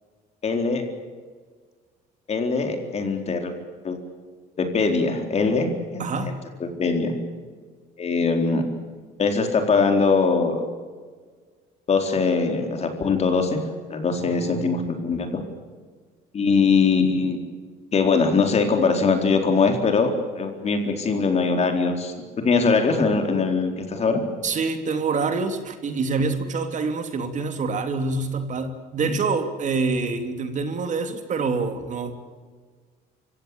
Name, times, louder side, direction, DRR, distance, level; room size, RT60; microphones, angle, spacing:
voice 1, 0.4-0.8 2.3-3.5 3.8-4.0 4.6-5.7 5.9-6.0 6.6-7.1 8.0-8.6 9.2-10.6 11.9-13.6 13.9-15.4 16.3-17.4 17.9-22.1 22.4-24.2, left 4 dB, 40° left, 5 dB, 4.2 m, -21 dB
voice 2, 6.0-6.3 14.2-14.8 24.4-32.1, right 4 dB, 45° right, 7 dB, 2.9 m, -26 dB
25.0 x 16.5 x 8.8 m, 1.5 s
cardioid pair, 110°, 17 cm